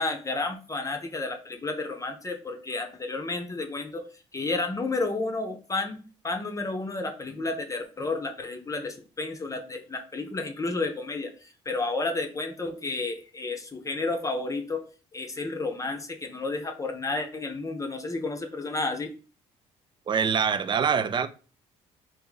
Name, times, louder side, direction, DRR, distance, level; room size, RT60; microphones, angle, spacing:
voice 1, 0.0-4.1 4.3-14.8 15.1-19.1, left 3 dB, 25° left, 0.7 m, -31 dB
voice 2, 20.1-21.3, right 7 dB, 35° right, 0.4 m, -24 dB
3.3 x 2.6 x 3.8 m
supercardioid pair, 75°, 13 cm